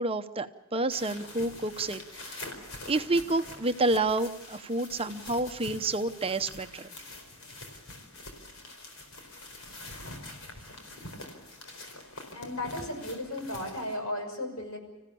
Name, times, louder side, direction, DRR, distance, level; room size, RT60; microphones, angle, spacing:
voice 1, 0.0-2.4 2.9-6.9, right 2 dB, 25° right, 9 dB, 0.8 m, -29 dB
sound 1, 0.9-14.0, left 2 dB, 70° left, 4.5 m, -45 dB
voice 2, 12.3-14.8, left 1 dB, 90° left, 4 dB, 6.3 m, -35 dB
26.5 x 15.5 x 8.5 m, 1.1 s
head